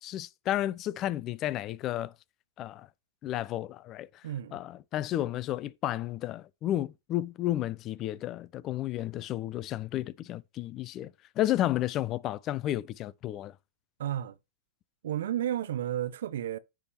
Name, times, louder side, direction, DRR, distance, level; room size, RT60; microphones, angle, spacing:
voice 1, 0.0-2.1 2.6-2.9 3.2-4.1 4.5-13.5, left 13 dB, 35° left, 0.4 m, -32 dB
voice 2, 4.2-4.6 14.0-14.4 15.0-16.6, right 11 dB, 65° right, 0.5 m, -32 dB
9.8 x 3.5 x 2.9 m
hypercardioid pair, 105°, 0 cm